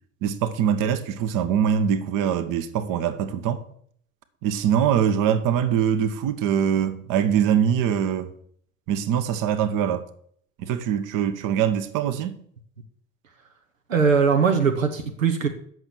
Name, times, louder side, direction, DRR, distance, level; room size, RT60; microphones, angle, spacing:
voice 1, 0.2-3.6 4.4-8.3 8.9-10.1 10.6-12.4, right 8 dB, 55° right, 1.1 m, -23 dB
voice 2, 13.9-15.5, right 6 dB, 90° right, 0.9 m, -20 dB
8.1 x 6.2 x 7.1 m
hypercardioid pair, 65°, 39 cm